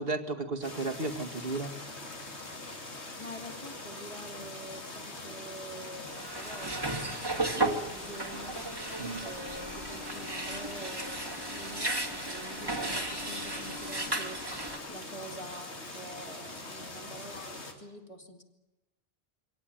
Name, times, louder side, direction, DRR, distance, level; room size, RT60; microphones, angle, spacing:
voice 1, 0.0-1.7 9.0-9.2, right 3 dB, 60° right, 5 dB, 2.1 m, -34 dB
sound 1, 0.6-17.7, left 2 dB, 85° left, 3.0 m, -43 dB
voice 2, 3.2-18.4, right 1 dB, 30° left, 2 dB, 2.9 m, -46 dB
sound 2, 6.1-14.8, right 2 dB, 20° right, 1.8 m, -35 dB
24.5 x 17.5 x 9.2 m, 0.99 s
omnidirectional pair, 1.1 m